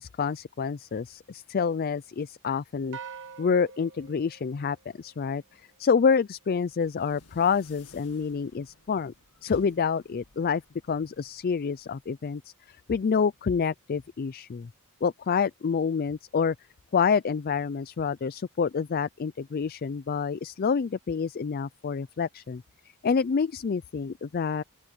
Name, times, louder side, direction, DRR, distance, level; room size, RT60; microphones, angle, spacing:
voice 1, 0.0-3.0 3.4-9.1 9.4-10.6 10.9-12.4 12.7-14.7 15.0-16.6 16.9-22.6 23.0-24.6, left 6 dB, 40° left, 0.4 m, -27 dB
sound 1, 2.9-5.5, right 6 dB, 55° right, 1.2 m, -45 dB
sound 2, 6.6-12.3, left 3 dB, 85° left, 1.8 m, -57 dB
open air
head